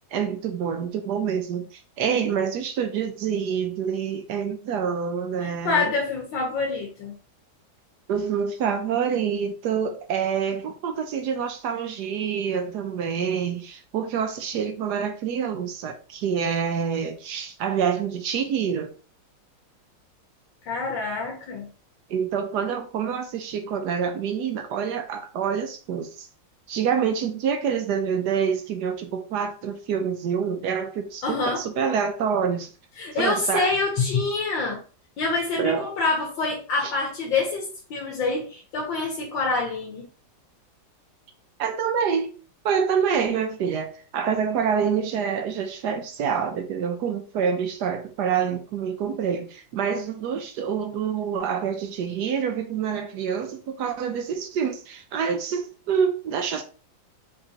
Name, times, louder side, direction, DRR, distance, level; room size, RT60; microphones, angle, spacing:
voice 1, 0.1-6.0 8.1-18.9 22.1-26.3 26.7-32.7 33.2-33.7 35.6-35.9 36.8-36.9 41.6-42.4 42.6-56.6, right 7 dB, 65° right, 1.2 m, -27 dB
voice 2, 5.4-7.2 20.6-21.7 31.2-31.6 33.0-34.8 35.2-40.0, left 3 dB, 80° left, 1.7 m, -26 dB
5.0 x 3.6 x 2.8 m
omnidirectional pair, 2.0 m